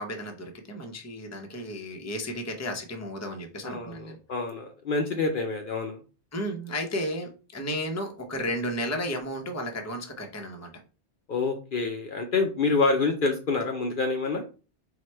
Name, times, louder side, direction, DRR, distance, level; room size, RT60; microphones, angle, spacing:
voice 1, 0.0-4.2 6.3-10.7, equal, 15° left, 4 dB, 0.6 m, -33 dB
voice 2, 3.6-6.0 11.3-14.4, left 3 dB, 55° left, 4 dB, 0.7 m, -27 dB
4.7 x 2.1 x 4.3 m, 0.34 s
omnidirectional pair, 1.2 m